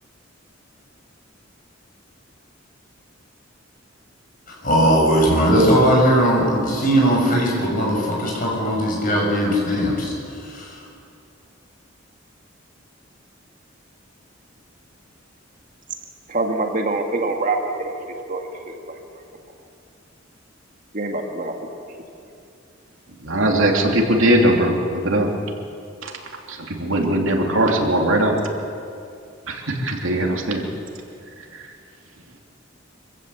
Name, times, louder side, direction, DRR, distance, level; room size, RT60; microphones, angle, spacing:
voice 1, 4.5-10.8, equal, 45° left, -2 dB, 6.6 m, -19 dB
voice 2, 16.3-17.9 18.3-18.4 18.7-18.8 20.9-21.5, right 2 dB, 45° right, 3 dB, 2.0 m, -24 dB
voice 3, 23.2-25.3 26.8-28.4 29.5-29.6 29.8-30.6, right 1 dB, 85° right, 1 dB, 2.9 m, -19 dB
25.5 x 15.5 x 8.0 m, 2.5 s
head